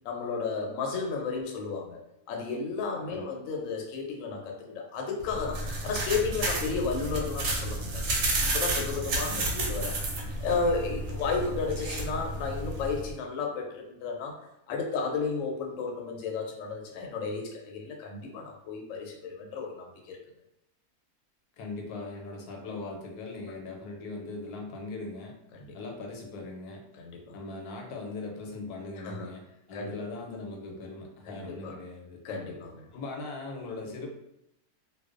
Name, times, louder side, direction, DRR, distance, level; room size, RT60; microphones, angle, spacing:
voice 1, 0.0-2.0 2.3-8.1 8.5-10.0 10.4-14.4 14.7-20.2 25.5-25.8 27.0-27.4 29.0-29.3 29.7-30.0 31.3-31.8 32.2-32.8, left 4 dB, 70° left, 1 dB, 0.8 m, -33 dB
sound 1, 5.2-13.1, right 2 dB, 65° right, 0.9 m, -31 dB
voice 2, 9.3-9.7 21.6-25.3 25.7-26.8 27.3-29.4 29.7-32.2 32.9-34.1, left 3 dB, 90° left, 1 dB, 1.1 m, -39 dB
2.4 x 2.2 x 2.4 m, 0.82 s
omnidirectional pair, 1.6 m